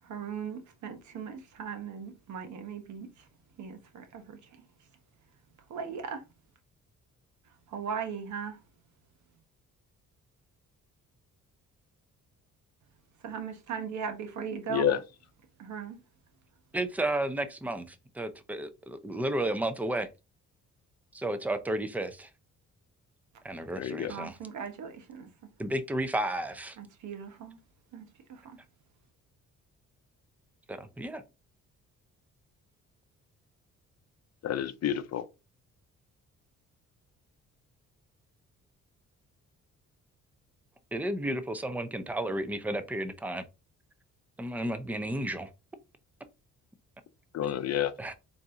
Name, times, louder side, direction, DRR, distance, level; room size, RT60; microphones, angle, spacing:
voice 1, 0.0-3.3 3.6-4.6 5.7-6.2 7.7-8.6 13.2-15.0 15.6-16.0 24.1-25.3 26.8-27.6 27.9-28.6, right 7 dB, 70° right, 1.1 m, -38 dB
voice 2, 14.7-15.0 23.7-24.1 34.4-35.2 47.3-47.9, left 10 dB, 60° left, 0.6 m, -29 dB
voice 3, 16.7-20.1 21.1-22.3 23.4-24.3 25.6-26.8 30.7-31.2 40.9-43.4 44.4-45.5 48.0-48.1, right 1 dB, 5° right, 0.5 m, -32 dB
4.0 x 2.7 x 3.6 m
cardioid pair, 90°, 30 cm